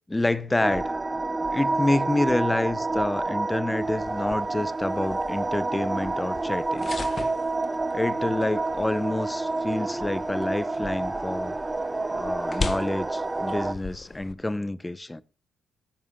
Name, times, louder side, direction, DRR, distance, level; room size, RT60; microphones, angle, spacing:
voice 1, 0.1-0.9 1.5-6.9 7.9-11.6 12.1-15.2, left 2 dB, 15° left, 0.8 m, -28 dB
sound 1, 0.6-13.7, right 2 dB, 20° right, 0.9 m, -29 dB
sound 2, 3.8-14.3, left 4 dB, 35° left, 1.4 m, -40 dB
19.0 x 9.2 x 2.3 m
cardioid pair, 90°, 0 cm